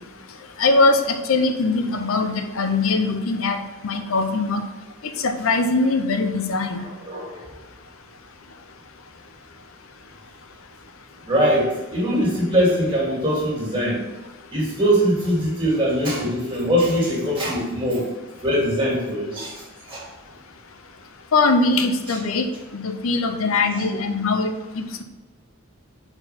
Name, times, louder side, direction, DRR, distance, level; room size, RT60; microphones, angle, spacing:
voice 1, 0.6-3.6 3.8-4.6 5.2-6.8 21.3-22.5 22.7-25.0, left 3 dB, 75° left, 6 dB, 0.6 m, -21 dB
voice 2, 6.8-7.5 11.3-14.0 14.5-18.1 18.4-20.0 22.1-22.2 23.8-23.9, equal, 25° right, -5 dB, 2.2 m, -22 dB
4.4 x 4.4 x 5.7 m, 1.2 s
head